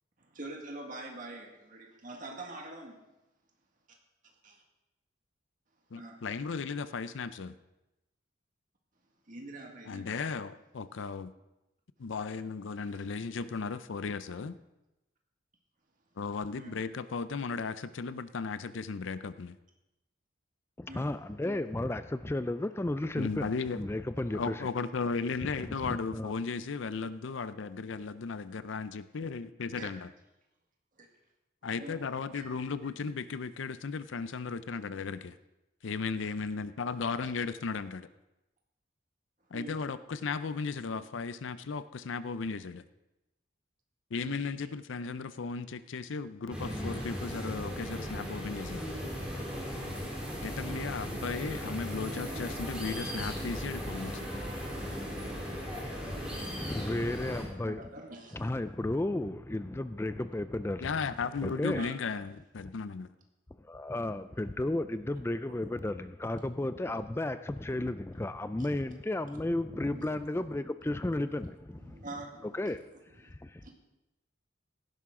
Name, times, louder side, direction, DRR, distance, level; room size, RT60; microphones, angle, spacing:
voice 1, 0.2-3.0 5.9-6.2 9.3-10.1 16.5-16.7 20.9-21.1 23.4-23.5 24.2-24.3 29.7-29.9 31.0-31.1 31.8-32.0 32.3-32.5 32.8-32.9 37.1-37.3 39.5-39.8 44.2-44.5 50.6-50.8 57.6-58.5 61.7-62.0 69.9-70.1 71.8-72.7 73.2-73.3 73.6-73.7, right 2 dB, 40° right, 0 dB, 1.8 m, -44 dB
voice 2, 5.9-7.5 9.9-11.3 12.0-14.6 16.2-19.6 23.2-23.8 24.3-30.1 31.6-35.3 35.8-38.1 39.5-42.8 44.1-48.8 50.4-54.4 60.8-63.1, left 4 dB, 70° left, 14 dB, 0.5 m, -36 dB
voice 3, 20.8-24.7 25.9-26.3 56.6-57.9 58.3-61.0 61.4-61.9 63.6-72.0 72.5-72.8 73.2-73.7, left 1 dB, 10° left, 12 dB, 0.3 m, -33 dB
sound 1, 46.5-57.4, equal, 5° right, 3.7 m, -37 dB
17.0 x 11.0 x 3.7 m, 0.95 s
head